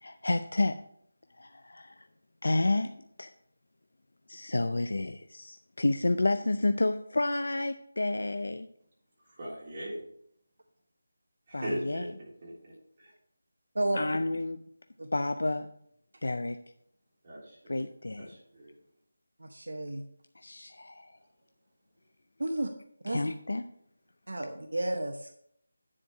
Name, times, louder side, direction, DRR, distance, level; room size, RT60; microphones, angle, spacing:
voice 1, 0.0-0.8 1.4-2.0 2.4-2.9 3.2-3.3 4.3-8.7 11.5-12.1 13.9-14.6 15.1-15.7 16.2-16.6 17.7-18.3 20.4-21.1 23.1-23.6, left 2 dB, 80° left, 9 dB, 0.5 m, -30 dB
voice 2, 9.2-10.0 11.5-13.1 17.2-17.9 18.2-18.7, right 1 dB, 30° right, -6 dB, 3.4 m, -40 dB
voice 3, 19.4-20.0 22.4-22.7 23.0-23.2 24.3-25.3, right 1 dB, 90° right, 5 dB, 0.8 m, -32 dB
9.9 x 4.5 x 4.8 m, 0.70 s
figure-of-eight pair, 175°, 0 cm